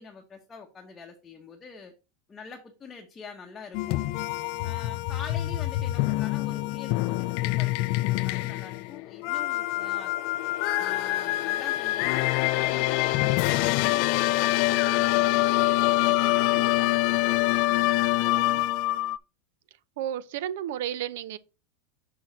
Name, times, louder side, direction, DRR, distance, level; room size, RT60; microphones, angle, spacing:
voice 1, 0.0-1.9 2.3-4.0 4.6-10.2 10.8-12.2 12.5-18.7, left 5 dB, 15° left, 0.9 m, -45 dB
sound 1, 3.7-19.2, left 18 dB, 50° left, 0.4 m, -25 dB
voice 2, 20.0-21.4, right 11 dB, 70° right, 0.6 m, -32 dB
6.2 x 5.8 x 4.0 m
supercardioid pair, 155°, 0 cm